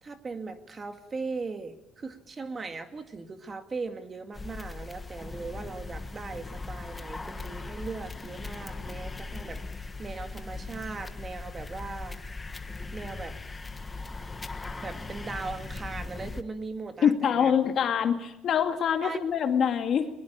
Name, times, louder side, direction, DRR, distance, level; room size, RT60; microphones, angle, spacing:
voice 1, 0.0-12.2 12.9-13.4 14.8-17.5 19.0-19.2, right 4 dB, 25° right, 8 dB, 2.1 m, -39 dB
sound 1, 4.3-16.4, left 3 dB, 15° left, 1.4 m, -39 dB
voice 2, 17.0-20.1, left 8 dB, 45° left, 7 dB, 2.2 m, -25 dB
21.5 x 21.5 x 8.8 m, 0.87 s
cardioid pair, 150°, 0 cm